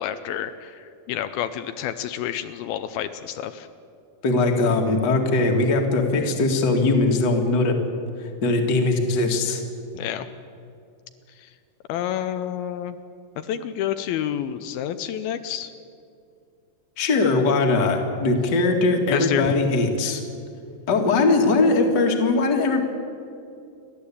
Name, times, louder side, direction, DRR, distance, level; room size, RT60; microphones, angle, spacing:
voice 1, 0.0-3.7 9.9-10.3 11.9-13.0 13.4-15.7 19.1-19.5, left 10 dB, 80° left, 10 dB, 2.5 m, -29 dB
voice 2, 4.2-7.8 8.4-9.6 17.0-20.2 20.9-22.8, left 3 dB, 35° left, 3 dB, 2.0 m, -20 dB
29.5 x 11.5 x 8.5 m, 2.5 s
omnidirectional pair, 4.4 m